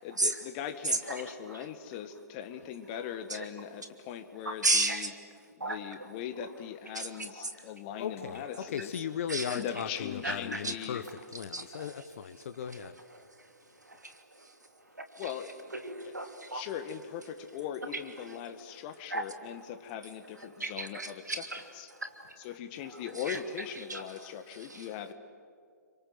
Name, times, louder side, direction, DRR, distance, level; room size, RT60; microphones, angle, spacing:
voice 1, 0.0-5.1 5.6-8.9 9.5-11.0 15.2-15.7 16.0-16.1 16.5-21.4 21.7-21.9 22.4-25.1, left 9 dB, 35° left, 9 dB, 1.9 m, -40 dB
voice 2, 4.4-5.1 5.6-5.8 6.9-7.5 9.3-9.6 10.2-10.7 11.5-11.9 13.2-13.5 13.8-14.5 15.0-15.3 15.7-16.6 18.3-18.4 19.1-19.2 20.6-21.6 22.0-22.3 23.3-23.4 23.9-24.9, right 2 dB, 85° right, 6 dB, 3.0 m, -34 dB
voice 3, 8.0-13.0, left 8 dB, 50° left, 10 dB, 1.1 m, -37 dB
29.0 x 25.5 x 7.9 m, 2.2 s
figure-of-eight pair, 125°, 9 cm